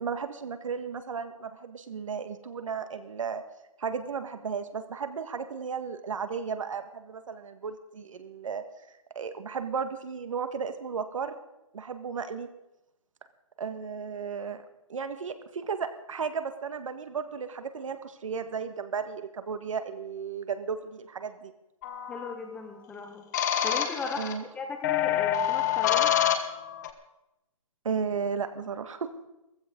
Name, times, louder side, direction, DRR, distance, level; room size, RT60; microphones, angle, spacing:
voice 1, 0.0-3.4 3.8-8.6 9.2-11.4 11.7-12.5 13.6-14.6 14.9-21.5 24.2-24.4 27.9-29.1, right 6 dB, 70° right, 9 dB, 1.8 m, -34 dB
sound 1, 21.8-22.3 23.3-24.3 24.8-26.9, left 10 dB, 30° left, 1.4 m, -26 dB
voice 2, 22.1-23.2 23.6-26.1, left 4 dB, 5° left, 4 dB, 1.0 m, -37 dB
15.5 x 15.0 x 5.3 m, 0.90 s
hypercardioid pair, 160°, 17 cm